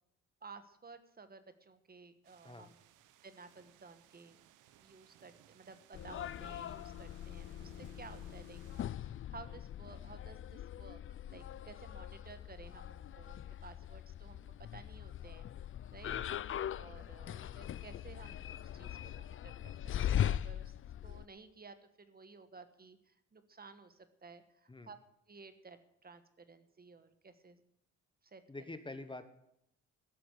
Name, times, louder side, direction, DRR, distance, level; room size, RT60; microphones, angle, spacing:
voice 1, 0.4-2.8 3.2-4.4 4.8-8.6 9.0-14.4 14.7-15.5 15.9-16.2 16.7-19.7 20.1-20.7 21.0-25.0 25.3-27.6 28.2-28.4, right 4 dB, 30° right, 11 dB, 1.3 m, -55 dB
sound 1, 2.2-8.8, right 11 dB, 85° right, 0.9 m, -63 dB
sound 2, 5.9-21.3, left 10 dB, 45° left, 0.5 m, -41 dB
voice 2, 28.5-29.3, left 2 dB, 15° left, 10 dB, 1.1 m, -47 dB
13.0 x 7.7 x 8.1 m, 0.78 s
cardioid pair, 90°, 30 cm